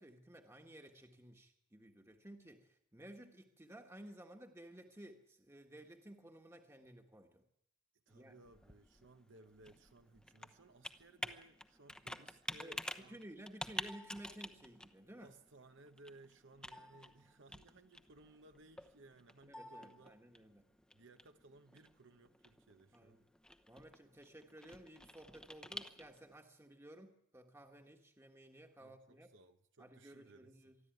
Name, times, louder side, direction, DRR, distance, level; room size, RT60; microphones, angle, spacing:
voice 1, 0.0-7.4 8.1-8.3 12.6-15.3 19.5-20.7 22.9-23.2 23.7-29.3 29.8-30.8, right 1 dB, 15° right, 1.5 m, -55 dB
Computer keyboard, 8.1-26.4, left 1 dB, 5° left, 1.0 m, -50 dB
voice 2, 8.1-13.2 15.2-20.2 20.9-23.2 28.8-30.7, right 2 dB, 65° right, 1.1 m, -61 dB
24.0 x 12.5 x 9.2 m
head